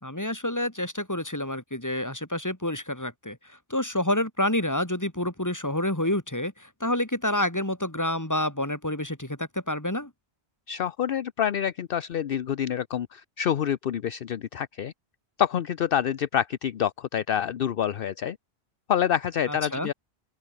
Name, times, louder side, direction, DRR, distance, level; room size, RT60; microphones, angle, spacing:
voice 1, 0.0-10.1 19.5-19.9, left 1 dB, 15° left, 3.2 m, -28 dB
voice 2, 10.7-14.9 15.4-18.4 18.9-19.9, left 9 dB, 60° left, 0.9 m, -27 dB
open air
omnidirectional pair, 1.1 m